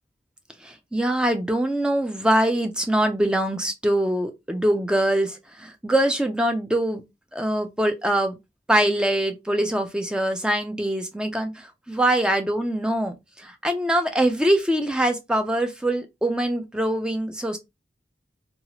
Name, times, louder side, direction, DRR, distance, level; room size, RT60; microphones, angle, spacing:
voice 1, 0.6-7.0 7.3-8.4 8.7-17.6, right 1 dB, 5° right, 0.3 m, -23 dB
2.8 x 2.3 x 2.8 m
head